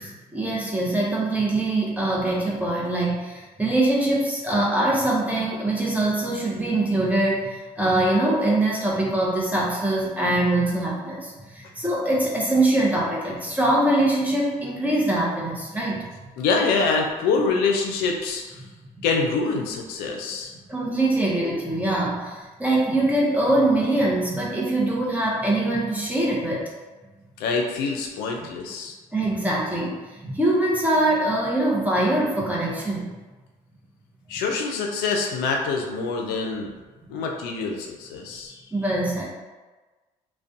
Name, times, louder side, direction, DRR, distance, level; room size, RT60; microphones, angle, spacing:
voice 1, 0.0-16.2 19.0-19.1 20.7-26.7 29.1-33.1 38.7-39.2, right 1 dB, 10° right, -5 dB, 0.6 m, -23 dB
voice 2, 16.4-18.6 19.0-20.5 27.4-28.9 34.3-36.7 37.1-38.7, left 4 dB, 85° left, 1 dB, 0.4 m, -25 dB
2.3 x 2.1 x 2.6 m, 1.2 s
supercardioid pair, 70°, 16 cm